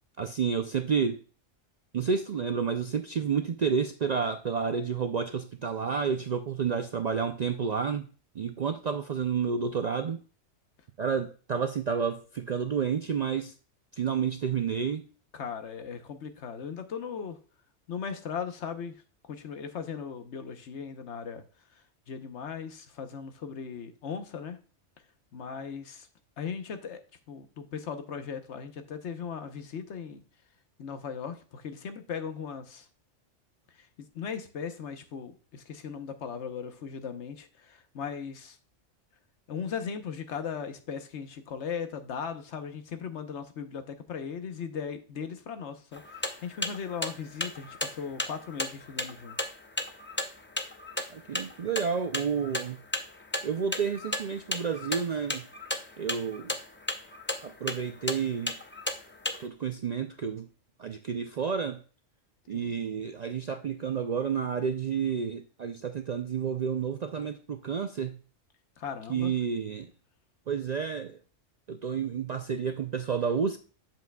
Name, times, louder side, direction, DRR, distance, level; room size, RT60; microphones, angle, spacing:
voice 1, 0.2-1.2 1.9-8.1 8.3-10.2 11.0-13.5 13.9-15.1 51.1-52.8 53.4-55.5 56.0-56.5 57.4-58.6 59.4-60.5 60.8-61.8 62.5-68.2 69.1-69.9 70.5-71.2 71.7-73.6, right 6 dB, 60° right, 0.4 m, -30 dB
voice 2, 15.3-17.4 17.9-19.0 19.2-21.4 21.7-24.6 25.3-26.1 26.4-27.0 27.3-30.2 30.8-32.9 33.7-33.9 34.1-38.6 39.5-49.4 62.5-62.8 68.8-69.3, left 6 dB, 70° left, 1.1 m, -38 dB
sound 1, 45.9-59.4, left 1 dB, 20° left, 0.3 m, -34 dB
8.1 x 7.3 x 2.2 m
omnidirectional pair, 1.2 m